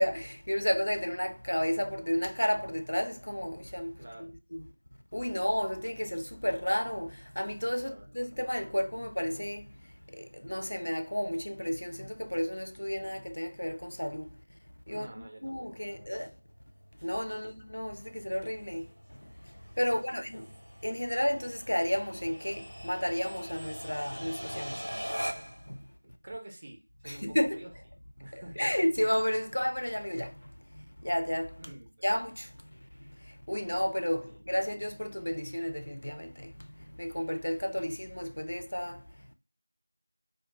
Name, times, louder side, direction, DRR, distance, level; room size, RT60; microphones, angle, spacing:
voice 1, 0.0-4.6 5.1-9.8 10.1-14.4 14.9-16.4 17.0-20.5 20.8-24.9 25.6-25.9 27.1-27.6 28.3-31.6 32.0-39.3, equal, 65° left, 0.4 m, -32 dB
voice 2, 4.0-4.3 7.8-8.3 14.9-16.2 17.3-17.6 19.8-20.5 26.0-27.7 28.2-28.7 31.6-32.0 33.9-34.6, right 1 dB, 20° right, 0.4 m, -49 dB
sound 1, 15.4-25.7, equal, 85° right, 0.6 m, -43 dB
2.2 x 2.2 x 2.9 m
figure-of-eight pair, 175°, 0 cm